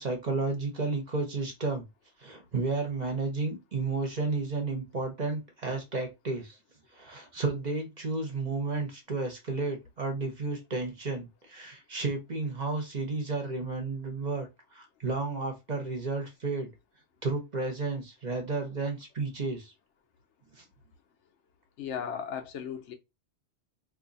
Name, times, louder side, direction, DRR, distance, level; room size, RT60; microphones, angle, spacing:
voice 1, 0.0-1.8 2.2-6.6 6.9-16.7 17.2-19.7 20.5-20.6, right 3 dB, 40° right, 0.9 m, -32 dB
voice 2, 21.8-22.9, left 8 dB, 85° left, 1.0 m, -36 dB
2.7 x 2.7 x 3.9 m
omnidirectional pair, 1.2 m